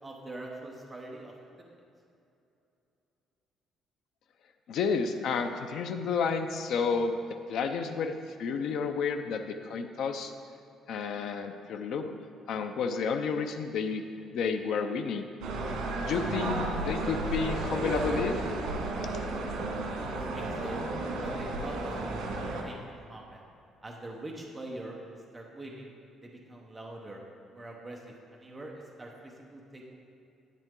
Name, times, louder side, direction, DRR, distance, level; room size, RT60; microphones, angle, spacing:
voice 1, 0.0-1.7 20.0-20.9 21.2-22.1 22.6-23.4 23.8-25.9 26.2-27.2 27.5-29.8, right 2 dB, 10° right, -2 dB, 0.9 m, -43 dB
voice 2, 4.7-7.2 7.5-10.3 10.9-12.1 12.5-15.3 16.0-18.4, left 5 dB, 60° left, 6 dB, 0.5 m, -31 dB
sound 1, 15.4-22.6, right 2 dB, 85° right, 1.6 m, -33 dB
10.5 x 9.2 x 3.7 m, 2.7 s
cardioid pair, 175°, 0 cm